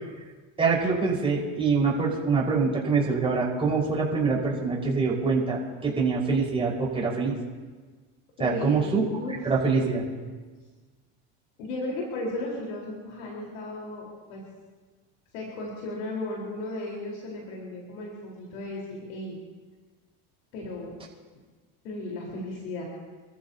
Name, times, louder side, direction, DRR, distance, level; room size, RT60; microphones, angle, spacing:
voice 1, 0.6-7.4 8.4-9.0 9.4-10.1, right 4 dB, 15° right, -4 dB, 5.1 m, -25 dB
voice 2, 8.4-8.8 9.2-9.3 11.6-14.4 15.3-19.3 20.5-20.9 21.8-22.8, left 2 dB, 80° left, -3 dB, 4.4 m, -35 dB
28.0 x 14.0 x 2.9 m, 1.4 s
supercardioid pair, 125°, 33 cm